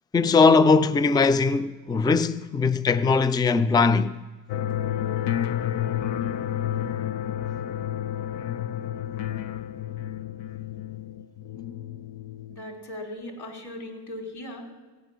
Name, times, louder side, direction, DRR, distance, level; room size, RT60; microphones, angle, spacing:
voice 1, 0.1-4.1, left 4 dB, 10° left, 0.3 m, -20 dB
sound 1, 4.5-12.6, left 11 dB, 75° left, 0.7 m, -30 dB
voice 2, 12.5-14.7, left 1 dB, 55° left, 3.0 m, -38 dB
16.0 x 6.0 x 9.3 m
cardioid pair, 120°, 44 cm